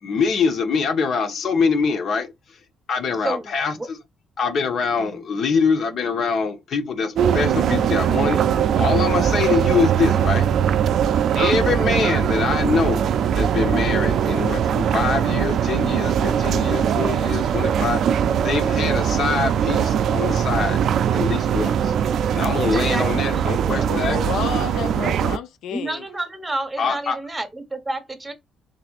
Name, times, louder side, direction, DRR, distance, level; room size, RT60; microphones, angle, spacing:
voice 1, 0.0-2.3 2.9-4.0 4.4-10.5 11.3-13.0 13.3-18.1 18.4-20.9 21.1-21.9 22.3-24.2 26.8-27.2, left 5 dB, 60° left, 1.1 m, -24 dB
voice 2, 3.2-3.9 5.0-5.2 22.6-23.9 25.7-28.3, right 2 dB, 15° right, 1.2 m, -30 dB
sound 1, 7.2-25.4, right 8 dB, 70° right, 0.4 m, -21 dB
voice 3, 23.9-26.0, left 8 dB, 80° left, 0.4 m, -30 dB
4.2 x 3.3 x 2.4 m
cardioid pair, 90°, 0 cm